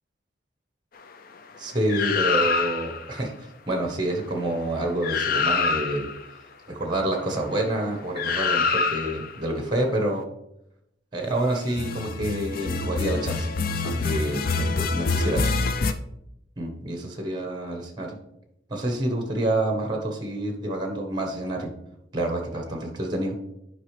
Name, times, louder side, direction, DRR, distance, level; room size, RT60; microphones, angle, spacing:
voice 1, 1.6-3.3 3.7-6.1 6.7-10.2 11.1-13.5 13.8-15.5 16.6-18.2 18.7-21.7 22.1-22.6 23.0-23.3, right 1 dB, 25° right, 3 dB, 1.3 m, -28 dB
sound 1, 1.9-3.0 4.7-4.8 5.0-6.2 8.2-9.3 11.7-15.9, left 4 dB, 50° left, 0.5 m, -25 dB
11.0 x 5.1 x 3.3 m, 0.81 s
head